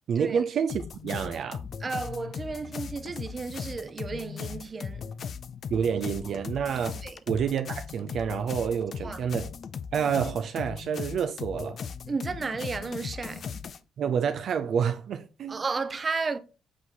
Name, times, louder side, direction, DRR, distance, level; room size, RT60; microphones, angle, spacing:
voice 1, 0.1-1.6 5.7-9.5 9.9-11.8 14.0-15.6, right 7 dB, 65° right, 0.5 m, -28 dB
sound 1, 0.7-13.8, left 6 dB, 55° left, 0.5 m, -38 dB
voice 2, 1.8-5.0 7.0-7.2 9.0-9.2 12.1-13.5 15.5-16.4, right 4 dB, 35° right, 0.8 m, -33 dB
8.0 x 3.0 x 3.9 m
cardioid pair, 90°, 0 cm